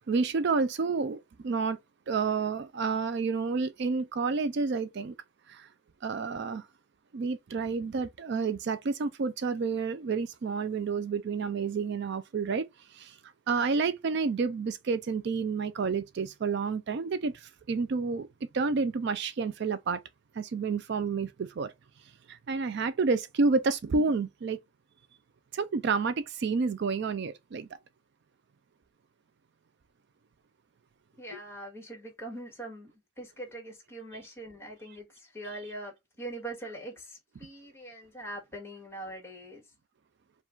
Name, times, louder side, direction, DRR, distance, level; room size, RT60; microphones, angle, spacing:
voice 1, 0.1-1.8 2.1-5.1 5.5-5.7 6.0-6.7 7.1-13.2 13.5-18.3 18.5-20.0 20.3-21.7 22.3-24.6 25.5-27.7, right 4 dB, 55° right, 0.4 m, -29 dB
voice 2, 31.2-32.9 33.2-39.6, right 1 dB, 10° left, 1.8 m, -42 dB
4.8 x 2.4 x 3.7 m
head